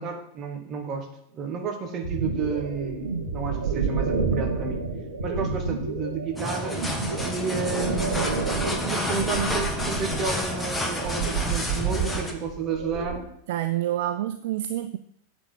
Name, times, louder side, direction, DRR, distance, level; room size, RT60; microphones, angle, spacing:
voice 1, 0.0-4.8 5.2-6.8 7.2-8.4 8.7-13.3, right 5 dB, 30° right, 4 dB, 1.5 m, -31 dB
sound 1, 2.0-13.2, right 4 dB, 75° right, 1.9 m, -30 dB
sound 2, 6.4-12.3, left 1 dB, 5° left, 1.2 m, -30 dB
voice 2, 13.5-15.0, right 13 dB, 55° right, 11 dB, 0.4 m, -27 dB
8.5 x 4.3 x 7.3 m, 0.71 s
figure-of-eight pair, 90°, 0 cm